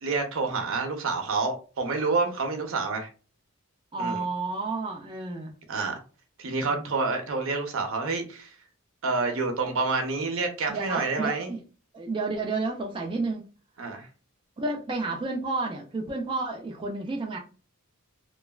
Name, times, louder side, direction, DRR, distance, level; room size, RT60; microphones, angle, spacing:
voice 1, 0.0-3.1 4.0-4.2 5.7-5.9 6.4-8.5 9.0-11.5 13.8-14.1, right 4 dB, 65° right, 0.7 m, -28 dB
voice 2, 3.9-5.6 6.7-6.9 10.7-11.6 11.9-13.4 14.6-17.4, right 3 dB, 25° right, 0.4 m, -31 dB
3.1 x 2.2 x 2.3 m
head